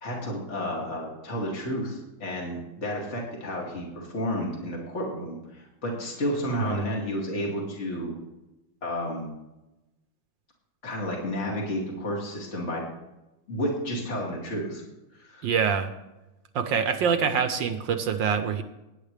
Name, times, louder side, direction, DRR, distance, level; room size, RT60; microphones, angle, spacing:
voice 1, 0.0-8.1 8.8-9.3 10.8-12.8 13.5-14.8 15.2-15.5, equal, 35° left, -2 dB, 2.8 m, -31 dB
voice 2, 6.5-6.8 15.4-15.9 16.5-18.6, right 7 dB, 70° right, 9 dB, 1.4 m, -25 dB
18.0 x 10.0 x 3.4 m, 0.98 s
omnidirectional pair, 2.2 m